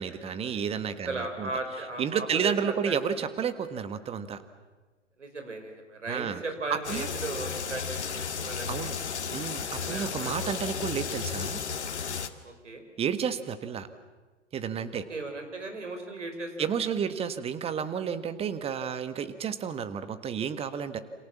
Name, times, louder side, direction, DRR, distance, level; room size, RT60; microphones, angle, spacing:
voice 1, 0.0-1.5 2.0-4.4 6.1-6.4 6.7-7.1 8.7-8.9 9.3-11.6 13.0-13.9 14.5-15.0 16.6-21.0, right 7 dB, 15° right, 11 dB, 1.5 m, -31 dB
voice 2, 1.1-3.0 5.2-8.9 9.8-10.5 12.4-12.8 14.9-16.7, right 3 dB, 75° right, 5 dB, 5.3 m, -37 dB
sound 1, 6.8-12.3, left 6 dB, 65° left, 1.9 m, -34 dB
29.0 x 27.0 x 7.4 m, 1.3 s
figure-of-eight pair, 105°, 36 cm